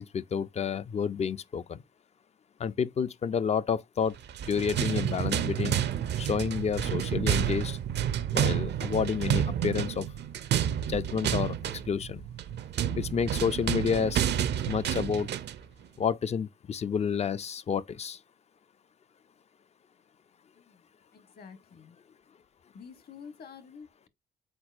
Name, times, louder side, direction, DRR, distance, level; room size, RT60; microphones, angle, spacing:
voice 1, 0.0-1.8 2.6-4.1 4.5-5.8 6.2-7.8 8.3-10.1 10.9-11.6 11.9-12.2 13.0-14.2 14.7-15.3 16.0-18.2, left 7 dB, 35° left, 0.4 m, -30 dB
sound 1, 4.2-15.6, right 10 dB, 60° right, 0.5 m, -30 dB
voice 2, 20.5-22.0 22.7-24.1, left 6 dB, 50° left, 1.1 m, -49 dB
4.4 x 4.1 x 2.4 m
cardioid pair, 90°, 20 cm